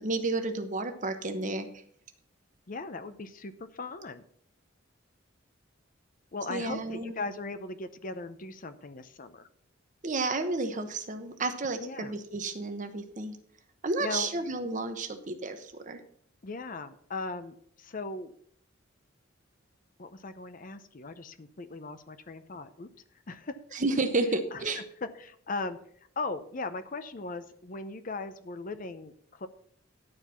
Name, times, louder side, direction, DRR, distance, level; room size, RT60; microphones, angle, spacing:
voice 1, 0.0-1.7 6.5-7.1 10.0-13.4 13.8-16.0 23.7-24.8, right 3 dB, 40° right, 8 dB, 1.0 m, -31 dB
voice 2, 2.7-4.2 6.3-9.5 11.8-12.1 14.0-14.3 16.4-18.3 20.0-22.9 23.3-23.8 24.5-24.7 25.0-25.8 26.2-29.5, left 3 dB, 40° left, 11 dB, 0.6 m, -38 dB
11.5 x 4.6 x 6.9 m, 0.63 s
head